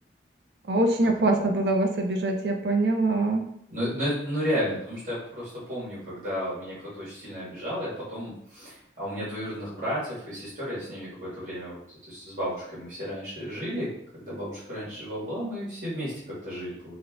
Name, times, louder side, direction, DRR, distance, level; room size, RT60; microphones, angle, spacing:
voice 1, 0.7-3.5, right 2 dB, 65° right, 3 dB, 0.5 m, -24 dB
voice 2, 1.2-1.6 3.7-11.8 12.1-17.0, equal, 45° right, -9 dB, 1.3 m, -33 dB
4.0 x 2.6 x 2.2 m, 0.70 s
head